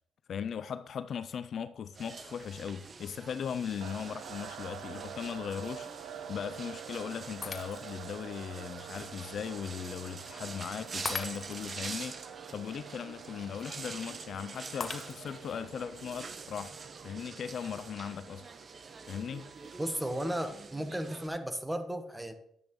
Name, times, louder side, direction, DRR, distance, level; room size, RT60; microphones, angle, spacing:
voice 1, 0.3-16.8 17.0-18.5 19.1-19.5, left 7 dB, 60° left, 0.4 m, -38 dB
sound 1, 1.9-21.3, right 4 dB, 40° right, 0.7 m, -46 dB
sound 2, 3.8-20.5, right 9 dB, 85° right, 0.7 m, -48 dB
Shatter, 7.4-8.1 8.7-8.8 11.0-11.8 14.8-15.5, left 5 dB, 40° left, 0.8 m, -39 dB
voice 2, 19.8-22.3, right 1 dB, 10° right, 1.2 m, -34 dB
10.5 x 8.2 x 3.1 m
cardioid pair, 90°, 0 cm